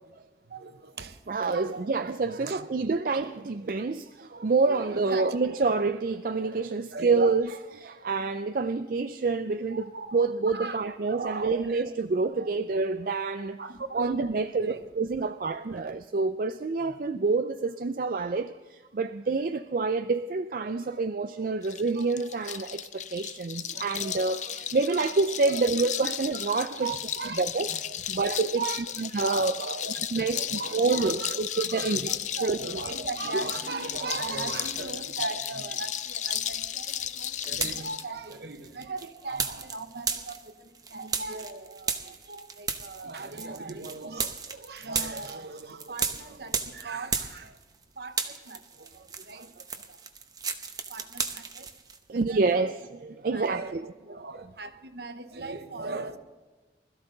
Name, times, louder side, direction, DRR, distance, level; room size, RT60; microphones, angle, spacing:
voice 1, 0.5-1.2 1.5-2.2 2.5-2.6 4.3-4.5 4.9-5.3 6.9-7.4 9.7-10.2 10.5-10.8 11.1-11.8 12.4-12.5 13.6-14.9 15.2-15.8 23.7-23.9 25.5-25.7 26.7-27.4 27.7-27.8 28.1-28.8 29.2-47.6 48.0-50.0 50.9-51.7 52.1-52.7 53.3-56.2, right 3 dB, 65° right, 1.0 m, -38 dB
voice 2, 1.3-7.5 7.8-13.6 13.9-27.0 27.4-28.6 29.0-29.5 30.1-32.1 32.4-32.6 33.3-33.4 52.1-53.8, right 3 dB, 50° right, 0.4 m, -27 dB
sound 1, 21.6-38.0, left 10 dB, 40° left, 0.5 m, -34 dB
sound 2, 34.0-35.1 35.4-47.8 48.1-52.0, right 5 dB, 20° right, 0.8 m, -35 dB
20.5 x 14.0 x 3.9 m
head